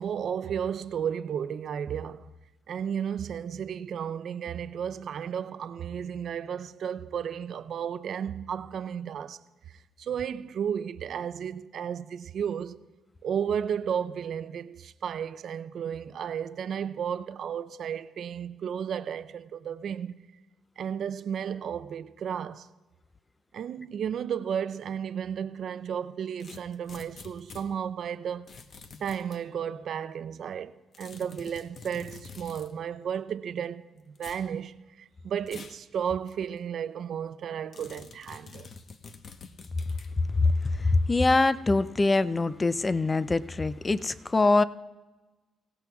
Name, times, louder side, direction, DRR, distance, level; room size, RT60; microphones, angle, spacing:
voice 1, 0.0-2.3 2.7-9.4 9.7-12.8 13.2-20.2 20.8-22.7 23.5-28.5 29.0-38.7, right 8 dB, 60° right, 0.5 m, -33 dB
sound 1, 26.4-27.7 28.5-29.4 30.9-32.7 34.1-34.5 35.5-35.8 36.3-36.4 37.7-40.1, left 5 dB, 55° left, 0.9 m, -47 dB
voice 2, 40.8-44.6, left 3 dB, 25° left, 0.4 m, -23 dB
25.0 x 17.0 x 2.3 m
cardioid pair, 90°, 0 cm